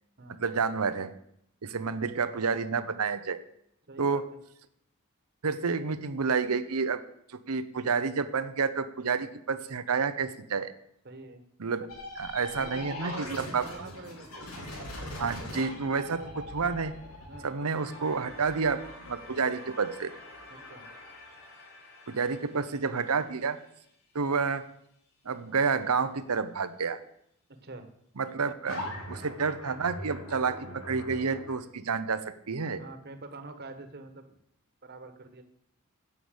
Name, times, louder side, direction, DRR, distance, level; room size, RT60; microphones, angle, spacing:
voice 1, 0.4-1.1 1.6-3.4 4.0-4.3 5.4-7.0 7.3-10.7 11.6-11.9 12.2-13.7 15.2-16.9 17.4-20.1 22.1-23.6 24.1-24.7 25.2-27.0 28.2-32.8, right 5 dB, 90° right, 11 dB, 0.8 m, -29 dB
voice 2, 3.9-4.2 11.0-11.4 12.6-14.3 17.3-17.5 20.5-20.8 27.5-27.9 32.7-34.4 34.8-35.4, right 2 dB, 45° right, 7 dB, 1.4 m, -45 dB
sound 1, 11.9-21.3 28.6-31.5, left 1 dB, 90° left, 3.7 m, -41 dB
sound 2, 17.7-24.6, left 1 dB, 70° left, 3.8 m, -50 dB
9.9 x 7.1 x 8.1 m, 0.73 s
head